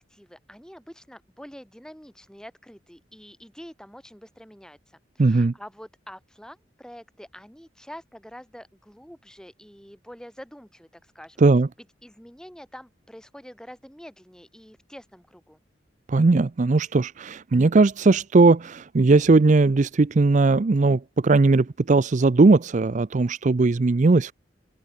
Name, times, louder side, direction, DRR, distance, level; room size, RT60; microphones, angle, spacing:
voice 1, 0.0-11.4 12.0-15.6, equal, 5° left, 6.8 m, -46 dB
voice 2, 5.2-5.5 11.4-11.7 16.1-24.3, right 3 dB, 40° right, 0.5 m, -18 dB
head